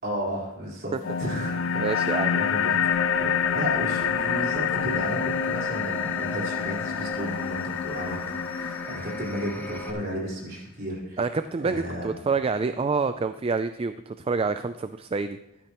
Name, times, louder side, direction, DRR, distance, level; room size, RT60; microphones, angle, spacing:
voice 1, 0.0-2.8 3.2-8.2 8.6-11.2 11.6-12.1, equal, 50° right, -4 dB, 4.3 m, -33 dB
sound 1, 1.0-10.0, left 7 dB, 60° left, 0.4 m, -27 dB
voice 2, 1.8-2.4 11.2-15.4, right 4 dB, 25° right, 10 dB, 0.3 m, -27 dB
sound 2, 2.9-9.9, left 1 dB, 10° left, 1.2 m, -36 dB
14.5 x 12.5 x 3.0 m, 0.92 s
head